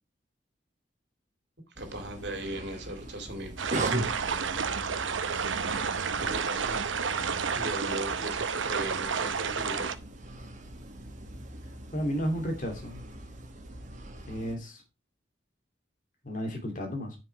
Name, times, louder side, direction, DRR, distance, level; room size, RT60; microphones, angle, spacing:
sound 1, 1.8-14.6, right 1 dB, 40° right, 1.6 m, -40 dB
voice 1, 1.8-3.5 6.2-6.8 7.5-9.9, right 1 dB, 60° right, 2.7 m, -37 dB
sound 2, 3.6-9.9, right 6 dB, 85° right, 0.8 m, -30 dB
voice 2, 11.9-13.0 14.3-14.8 16.2-17.2, equal, 45° left, 2.7 m, -32 dB
9.9 x 5.9 x 4.6 m
head